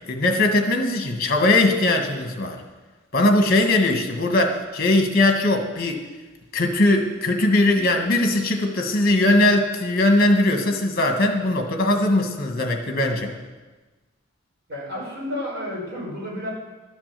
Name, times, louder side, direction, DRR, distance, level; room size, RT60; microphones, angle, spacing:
voice 1, 0.1-2.6 3.1-6.0 6.5-13.3, left 2 dB, 45° left, 4 dB, 1.5 m, -20 dB
voice 2, 14.7-16.5, left 1 dB, 50° right, -5 dB, 5.1 m, -31 dB
12.5 x 7.3 x 6.8 m, 1.2 s
head